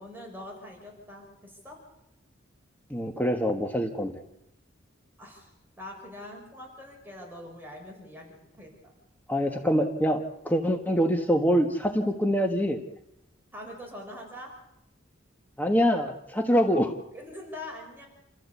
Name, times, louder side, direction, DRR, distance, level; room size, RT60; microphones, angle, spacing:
voice 1, 0.0-1.8 5.2-5.5 5.8-8.9 13.5-14.5 17.1-18.1, left 1 dB, 10° right, -1 dB, 6.1 m, -43 dB
voice 2, 2.9-4.2 9.3-12.8 15.6-16.9, equal, 10° left, 4 dB, 1.4 m, -25 dB
29.0 x 15.0 x 8.3 m, 0.86 s
head